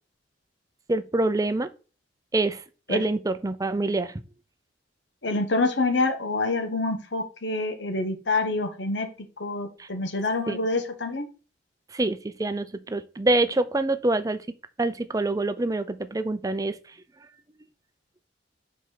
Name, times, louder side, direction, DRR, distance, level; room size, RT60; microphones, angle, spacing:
voice 1, 0.9-1.7 2.3-2.6 2.9-4.1 9.8-9.9 10.5-10.6 11.9-14.4 14.8-16.8, right 2 dB, 20° right, 0.5 m, -25 dB
voice 2, 5.2-9.1 9.4-11.3, left 3 dB, 80° left, 1.3 m, -26 dB
5.3 x 4.6 x 5.8 m
head